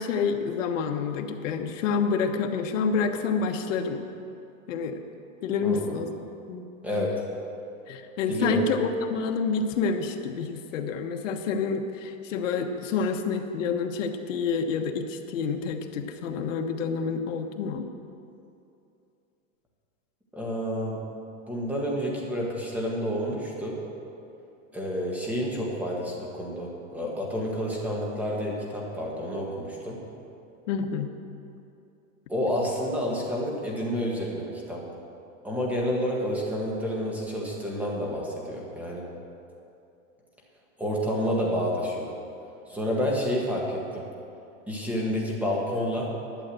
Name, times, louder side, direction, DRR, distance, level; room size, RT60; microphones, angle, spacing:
voice 1, 0.0-4.0 4.7-5.0 5.4-6.1 6.5-6.6 6.9-7.1 7.9-17.8 30.7-31.1, left 5 dB, 65° left, 5 dB, 1.3 m, -28 dB
voice 2, 5.6-5.9 6.8-7.1 8.3-8.6 20.3-21.0 21.5-23.8 24.7-30.0 32.3-34.8 35.4-39.1 40.8-42.1 42.7-44.0 44.7-46.1, equal, 5° right, -3 dB, 1.6 m, -29 dB
12.0 x 8.0 x 7.7 m, 2.7 s
supercardioid pair, 160°, 40 cm